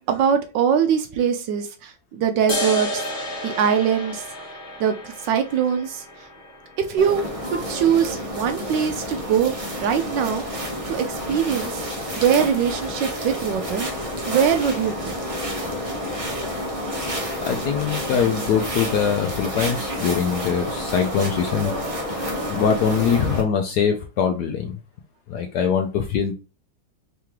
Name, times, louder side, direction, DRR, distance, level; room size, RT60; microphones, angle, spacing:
voice 1, 0.1-4.5 4.8-6.0 6.8-7.2 7.5-10.4 10.9-11.9 12.1-13.9 14.3-15.1, right 8 dB, 75° right, 1.1 m, -22 dB
sound 1, 2.5-9.5, equal, 30° left, 1.5 m, -33 dB
sound 2, 7.0-23.4, equal, 40° right, 0.4 m, -29 dB
voice 2, 17.5-21.7 22.1-24.8 25.3-26.3, left 7 dB, 75° left, 0.9 m, -23 dB
3.8 x 3.5 x 3.0 m
omnidirectional pair, 2.2 m